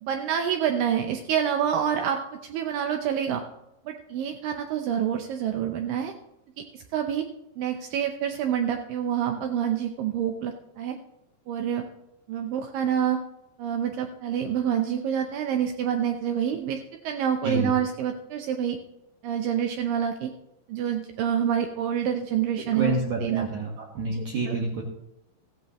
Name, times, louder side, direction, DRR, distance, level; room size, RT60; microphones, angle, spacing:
voice 1, 0.0-3.4 3.9-6.1 6.6-7.2 7.6-11.0 11.5-11.8 12.3-13.2 13.6-18.8 19.2-20.3 20.7-23.5 24.1-24.6, right 9 dB, 90° right, 4 dB, 1.9 m, -27 dB
voice 2, 22.8-24.8, right 2 dB, 60° right, -2 dB, 2.3 m, -28 dB
15.5 x 14.5 x 3.0 m, 0.87 s
omnidirectional pair, 4.9 m